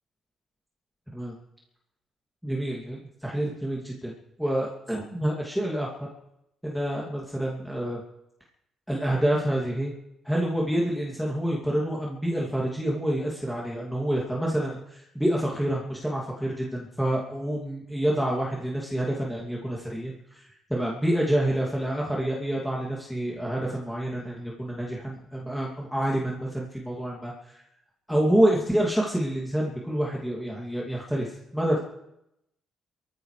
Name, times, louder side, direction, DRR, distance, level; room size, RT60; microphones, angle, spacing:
voice 1, 2.4-4.1 4.4-5.9 6.6-8.0 8.9-9.9 10.2-27.6 28.1-31.8, right 1 dB, ahead, -4 dB, 2.7 m, -27 dB
23.0 x 15.0 x 3.4 m, 0.84 s
cardioid pair, 90°, 0 cm